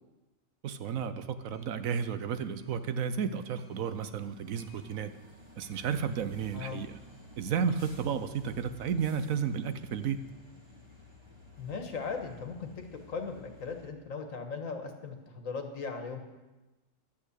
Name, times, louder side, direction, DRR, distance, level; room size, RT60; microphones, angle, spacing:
voice 1, 0.6-5.1 5.6-7.0 7.4-10.2, right 7 dB, 85° right, 11 dB, 1.2 m, -32 dB
sound 1, 1.4-13.9, left 1 dB, 20° right, 1.6 m, -54 dB
voice 2, 11.6-16.2, left 5 dB, 80° left, 5 dB, 1.8 m, -38 dB
11.5 x 8.7 x 8.1 m, 1.1 s
omnidirectional pair, 1.4 m